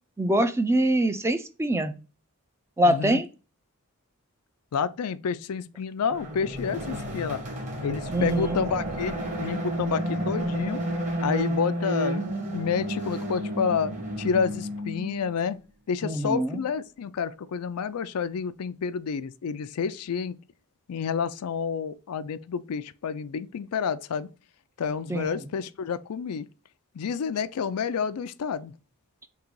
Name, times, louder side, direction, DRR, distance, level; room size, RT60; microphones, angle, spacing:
voice 1, 0.2-1.9 2.8-3.3 8.1-8.6 16.0-16.6 25.1-25.3, right 1 dB, 10° right, 0.4 m, -24 dB
voice 2, 2.8-3.2 4.7-7.4 7.8-10.8 11.2-12.2 12.5-13.9 14.2-15.6 15.9-20.4 20.9-24.3 24.8-26.5 26.9-28.7, left 6 dB, 90° left, 0.4 m, -29 dB
sound 1, 6.1-15.3, right 1 dB, 35° right, 1.5 m, -31 dB
3.8 x 2.9 x 4.5 m
head